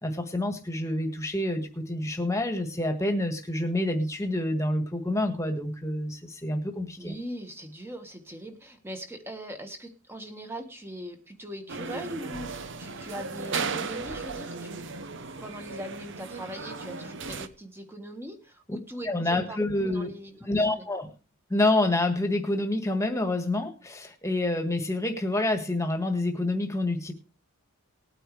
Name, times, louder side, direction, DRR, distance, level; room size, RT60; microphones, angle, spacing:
voice 1, 0.0-7.2 19.1-20.1 20.5-21.1 21.5-27.1, left 1 dB, 15° left, 5 dB, 1.7 m, -27 dB
voice 2, 7.0-14.9 15.4-19.6 19.9-20.8, equal, 10° right, 5 dB, 1.6 m, -41 dB
sound 1, 11.7-17.5, right 4 dB, 55° right, 0.9 m, -36 dB
20.0 x 9.1 x 3.3 m, 0.33 s
head